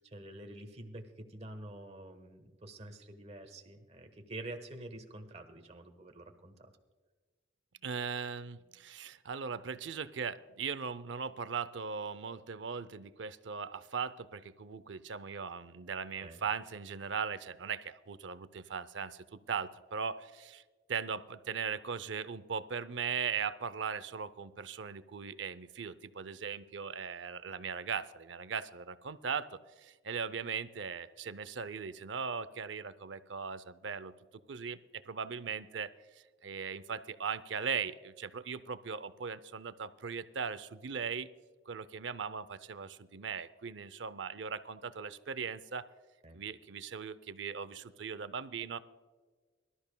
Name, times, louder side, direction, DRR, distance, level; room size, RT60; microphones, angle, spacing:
voice 1, 0.0-6.7 16.2-16.4 46.2-46.4, right 1 dB, 35° right, 6 dB, 1.2 m, -47 dB
voice 2, 7.8-20.6 20.9-29.5 29.8-34.1 34.5-34.8 35.1-35.9 36.4-41.3 41.7-45.9 46.3-48.8, right 6 dB, 80° right, 15 dB, 0.6 m, -39 dB
23.0 x 13.0 x 2.3 m, 1.4 s
head